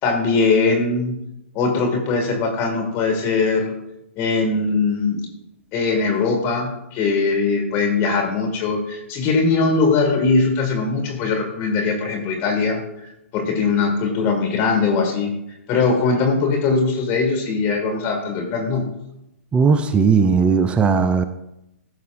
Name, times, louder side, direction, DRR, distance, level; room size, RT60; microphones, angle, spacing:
voice 1, 0.0-1.2 1.5-3.7 4.2-5.2 5.7-15.3 15.7-18.9, left 4 dB, 30° left, 2 dB, 1.9 m, -21 dB
voice 2, 19.5-21.2, right 5 dB, 15° right, 11 dB, 0.5 m, -17 dB
14.5 x 6.7 x 2.6 m, 0.85 s
hypercardioid pair, 125°, 8 cm